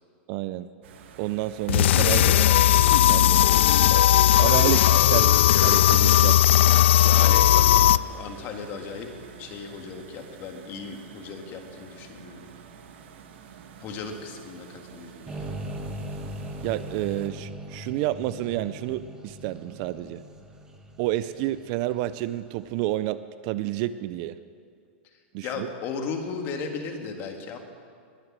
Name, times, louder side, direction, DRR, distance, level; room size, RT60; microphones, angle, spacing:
voice 1, 0.3-0.7 1.2-2.7 3.0-3.5 4.4-5.4 5.6-6.6 16.6-20.2 21.0-24.4 25.3-25.7, right 15 dB, 40° right, 14 dB, 0.4 m, -30 dB
sound 1, 0.8-17.3, right 8 dB, 65° right, 1.5 m, -47 dB
sound 2, 1.7-8.0, left 12 dB, 70° left, 0.4 m, -17 dB
voice 2, 7.0-9.1 9.4-12.5 13.8-15.6 25.4-27.6, left 5 dB, 30° left, 5 dB, 1.7 m, -36 dB
sound 3, 15.3-22.4, right 1 dB, 10° right, 1.2 m, -39 dB
20.5 x 8.0 x 7.4 m, 2.2 s
supercardioid pair, 160°, 7 cm